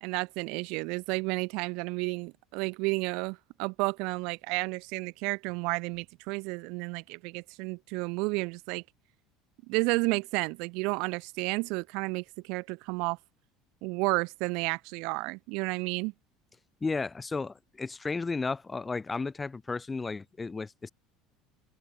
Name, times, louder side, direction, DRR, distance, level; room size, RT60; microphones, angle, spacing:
voice 1, 0.0-8.8 9.7-13.2 13.8-16.1, right 29 dB, 70° right, 2.2 m, -31 dB
voice 2, 16.8-20.9, left 4 dB, 15° left, 2.1 m, -33 dB
cardioid pair, 150°, 0 cm